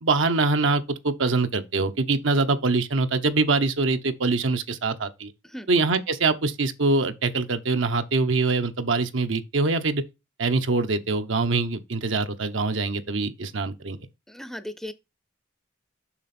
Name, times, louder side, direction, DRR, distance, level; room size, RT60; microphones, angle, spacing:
voice 1, 0.0-5.3 5.7-10.0 10.4-14.0, right 3 dB, 80° right, 0.9 m, -24 dB
voice 2, 14.3-14.9, left 1 dB, ahead, 0.5 m, -36 dB
7.1 x 5.8 x 4.3 m
head